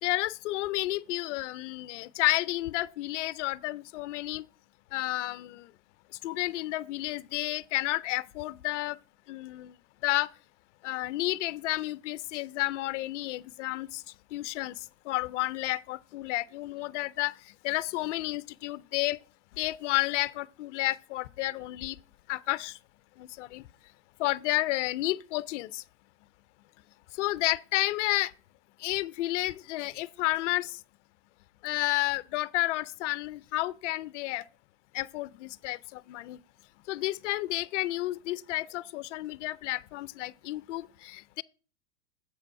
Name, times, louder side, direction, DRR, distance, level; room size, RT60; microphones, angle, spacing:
voice 1, 0.0-4.4 4.9-5.7 6.2-9.0 9.3-9.7 10.0-10.3 10.8-14.0 14.3-14.7 15.1-17.3 17.6-19.2 19.6-22.0 22.3-22.8 23.2-23.6 24.2-25.8 27.2-28.3 28.8-30.8 31.6-34.4 34.9-36.4 36.9-41.4, left 18 dB, 50° left, 0.5 m, -31 dB
7.6 x 5.8 x 4.6 m
hypercardioid pair, 130°, 50 cm